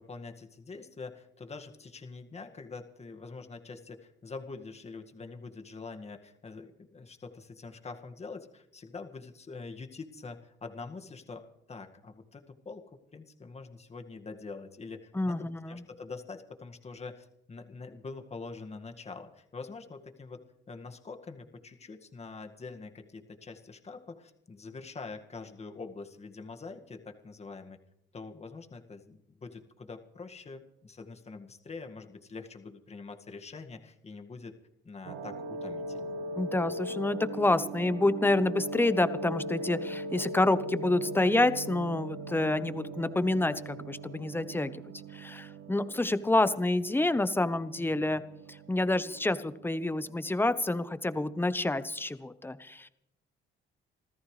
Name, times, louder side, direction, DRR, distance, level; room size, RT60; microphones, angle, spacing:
voice 1, 0.0-20.4 20.7-27.8 28.1-34.6 34.8-36.2, left 4 dB, 35° left, 5 dB, 1.9 m, -45 dB
voice 2, 15.1-15.8 36.4-44.7 45.1-48.2 48.5-52.9, left 2 dB, 10° left, 13 dB, 1.0 m, -28 dB
sound 1, 35.0-50.7 51.4-51.5, right 1 dB, 85° right, 1.0 m, -40 dB
26.5 x 14.0 x 3.3 m, 0.80 s
cardioid pair, 90°, 20 cm